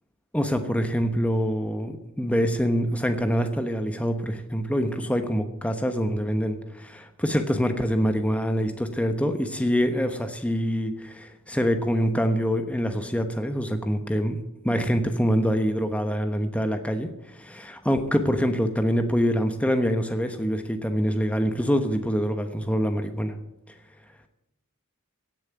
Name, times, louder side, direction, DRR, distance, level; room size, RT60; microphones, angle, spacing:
voice 1, 0.3-14.4 14.6-23.3, equal, 5° left, 7 dB, 1.0 m, -25 dB
17.0 x 7.4 x 9.4 m, 0.83 s
head